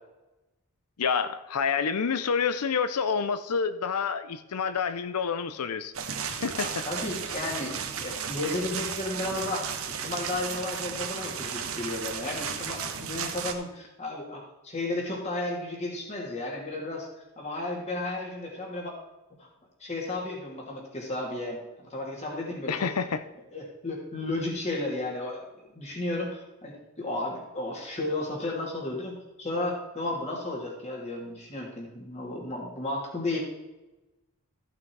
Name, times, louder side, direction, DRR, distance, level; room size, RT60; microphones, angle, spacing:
voice 1, 1.0-5.9 6.4-6.8 22.7-23.2, left 6 dB, 85° left, 12 dB, 0.6 m, -28 dB
sound 1, 5.9-13.5, right 7 dB, 70° right, 1.1 m, -34 dB
voice 2, 6.6-9.7 10.0-17.1 17.4-18.9 19.4-19.5 19.8-22.9 23.5-33.4, left 2 dB, 30° left, -2 dB, 2.8 m, -33 dB
14.0 x 6.1 x 4.7 m, 1.0 s
head